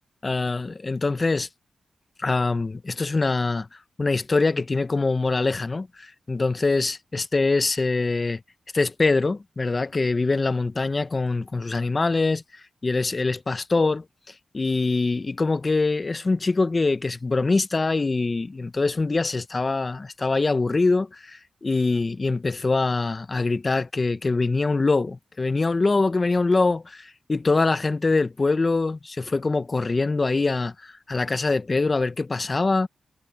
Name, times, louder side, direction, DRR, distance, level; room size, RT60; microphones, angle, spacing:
voice 1, 0.2-1.5 2.2-3.7 4.0-8.4 8.7-12.4 12.8-14.0 14.5-32.9, left 3 dB, 40° left, 1.0 m, -24 dB
cardioid pair, 50°, 0 cm